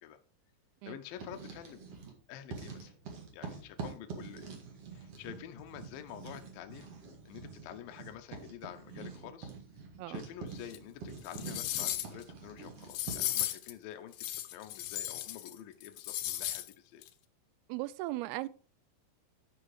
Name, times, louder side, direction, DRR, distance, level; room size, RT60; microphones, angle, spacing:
voice 1, 0.8-1.9 2.3-2.9 3.3-4.6 4.9-6.9 7.3-9.5 10.1-17.0, left 10 dB, 75° left, 2.3 m, -48 dB
Writing, 1.0-2.2 2.5-13.5, right 5 dB, 45° right, 2.3 m, -46 dB
sound 1, 10.7-10.8 11.3-12.2 12.9-13.7 14.1-15.5 15.8-16.7 17.0-17.1, left 14 dB, 90° left, 1.9 m, -36 dB
voice 2, 17.7-18.5, right 18 dB, 80° right, 2.4 m, -37 dB
11.5 x 5.6 x 4.8 m
omnidirectional pair, 4.8 m